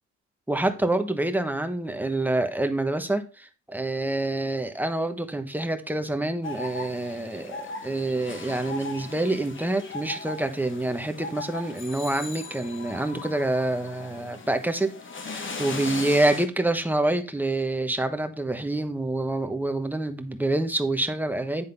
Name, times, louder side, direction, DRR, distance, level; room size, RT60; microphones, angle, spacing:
voice 1, 0.5-21.6, right 2 dB, 5° right, 1.3 m, -27 dB
sound 1, 6.4-16.5, left 3 dB, 40° left, 1.6 m, -38 dB
10.0 x 3.8 x 5.5 m
cardioid pair, 90°, 30 cm